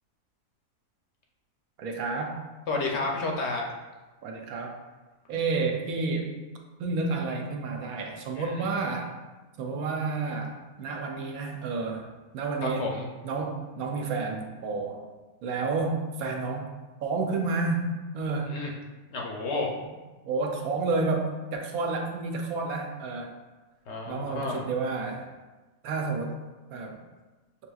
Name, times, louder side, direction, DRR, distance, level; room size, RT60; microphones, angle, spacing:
voice 1, 1.8-2.4 4.2-4.8 5.3-6.3 6.8-9.1 9.6-12.0 12.3-12.9 13.2-15.0 15.4-16.7 17.0-18.5 20.2-23.3 24.1-25.3 25.8-26.4 26.7-26.9, right 3 dB, 85° right, 2 dB, 1.1 m, -30 dB
voice 2, 2.7-3.6 8.4-8.6 12.6-13.1 18.5-18.7 19.1-19.7 23.9-24.6, left 3 dB, 60° left, 0 dB, 0.8 m, -31 dB
6.6 x 2.8 x 2.3 m, 1.2 s
omnidirectional pair, 1.5 m